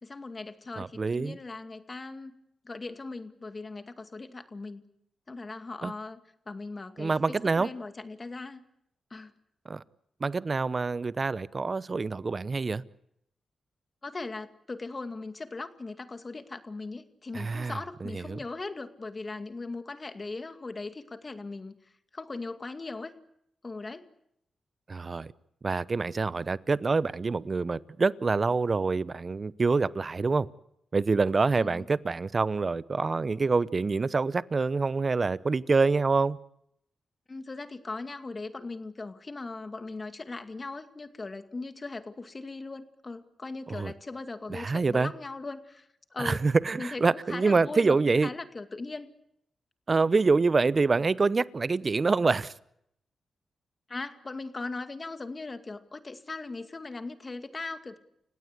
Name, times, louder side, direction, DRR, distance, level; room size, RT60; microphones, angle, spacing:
voice 1, 0.0-2.3 2.6-4.8 5.3-6.2 6.5-8.6 9.1-9.3 14.0-21.8 22.1-23.1 23.6-24.1 31.5-31.9 37.3-46.4 46.8-48.0 48.2-49.1 53.9-58.0, left 3 dB, 35° left, 2.3 m, -39 dB
voice 2, 0.8-1.4 5.8-5.9 7.0-7.7 9.7-9.8 10.2-12.8 17.3-18.4 24.9-25.3 25.6-30.5 30.9-36.4 43.7-43.9 44.5-45.1 46.2-48.3 49.9-52.5, right 4 dB, 45° right, 0.9 m, -26 dB
30.0 x 17.0 x 8.3 m
cardioid pair, 60°, 0 cm